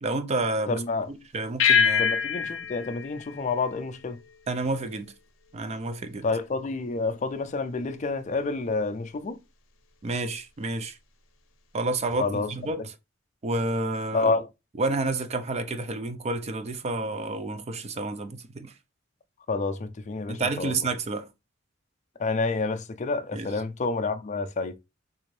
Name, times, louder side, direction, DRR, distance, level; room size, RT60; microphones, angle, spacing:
voice 1, 0.0-2.1 4.5-5.1 5.5-6.3 10.0-11.0 11.7-12.9 13.4-14.4 14.8-18.7 20.3-21.3 23.3-23.5, right 2 dB, 35° right, 0.4 m, -30 dB
voice 2, 0.7-1.1 2.0-4.2 6.2-9.4 12.2-12.5 14.1-14.5 19.5-20.8 22.2-24.7, left 3 dB, 40° left, 0.4 m, -28 dB
sound 1, 1.6-4.4, left 7 dB, 85° left, 0.6 m, -25 dB
3.7 x 2.6 x 3.1 m
head